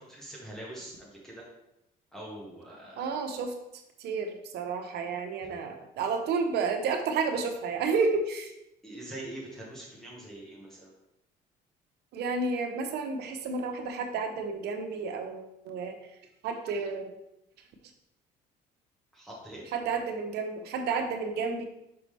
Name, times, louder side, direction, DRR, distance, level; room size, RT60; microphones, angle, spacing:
voice 1, 0.0-1.4 2.1-3.1 8.8-10.9 19.1-19.6, right 1 dB, 5° left, -5 dB, 1.8 m, -43 dB
voice 2, 3.0-3.5 4.0-8.5 12.1-16.0 16.4-17.2 19.7-21.6, right 4 dB, 75° right, 5 dB, 1.0 m, -31 dB
5.8 x 5.2 x 3.4 m, 0.86 s
cardioid pair, 110°, 17 cm